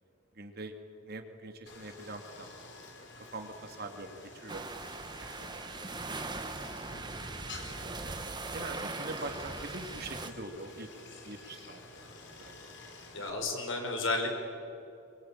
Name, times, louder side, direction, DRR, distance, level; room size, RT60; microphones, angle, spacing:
voice 1, 0.3-0.7 1.0-2.7 3.0-4.6 5.0-5.1 5.4-5.5 7.5-8.1 8.5-10.9 11.2-11.8 12.4-12.5 12.8-12.9, right 2 dB, 50° right, 5 dB, 2.5 m, -43 dB
Stream, 1.7-13.3, left 3 dB, 60° left, 3.8 m, -50 dB
sound 1, 4.5-10.3, right 3 dB, 20° right, 1.3 m, -40 dB
voice 2, 6.9-7.2 13.1-14.4, left 2 dB, 80° left, 3 dB, 4.9 m, -33 dB
25.5 x 23.5 x 8.9 m, 2.8 s
head